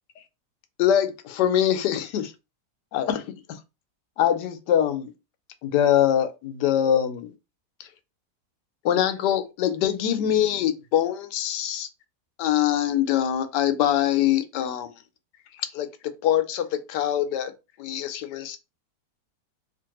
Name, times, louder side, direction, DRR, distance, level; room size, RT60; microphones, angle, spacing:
voice 1, 0.8-2.3 2.9-3.6 4.2-5.1 5.6-7.3 7.8-7.9 8.8-11.9 12.4-14.9 15.7-17.5 17.8-18.6, left 10 dB, 85° left, 1.2 m, -23 dB
2.9 x 2.5 x 2.9 m
omnidirectional pair, 1.8 m